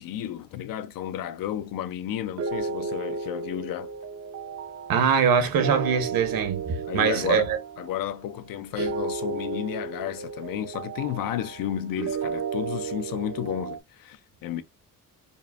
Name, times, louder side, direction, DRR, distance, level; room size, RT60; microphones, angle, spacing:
voice 1, 0.0-3.9 6.9-14.6, left 11 dB, 75° left, 0.5 m, -32 dB
sound 1, 2.4-13.8, right 5 dB, 45° right, 0.5 m, -34 dB
voice 2, 4.9-7.6, right 7 dB, 85° right, 1.1 m, -23 dB
5.3 x 2.5 x 2.3 m
wide cardioid pair, 165°, 34 cm